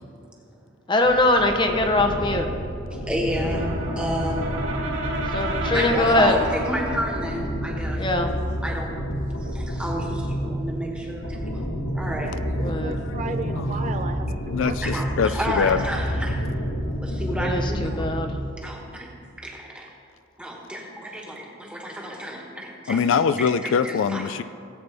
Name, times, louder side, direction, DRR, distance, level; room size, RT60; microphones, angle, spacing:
voice 1, 0.9-2.5 5.3-6.3 8.0-8.3 12.6-13.0 17.4-18.3, left 2 dB, 20° left, 5 dB, 0.8 m, -21 dB
sound 1, 1.0-18.5, equal, 90° left, 1.3 m, -29 dB
voice 2, 2.9-3.7 4.0-4.4 5.7-8.0 8.6-8.9 9.4-11.6 11.9-12.4 14.8-16.4 17.0-18.0 18.6-19.1 19.4-19.9 20.4-23.0 23.6-24.2, equal, 5° right, -2 dB, 1.5 m, -31 dB
Brass instrument, 3.2-7.4, right 1 dB, 60° right, 3.4 m, -31 dB
voice 3, 12.8-15.1, right 3 dB, 35° right, 7 dB, 0.4 m, -34 dB
voice 4, 14.5-15.8 22.9-24.4, left 6 dB, 70° left, 12 dB, 0.3 m, -23 dB
18.0 x 8.6 x 3.4 m, 2.3 s
head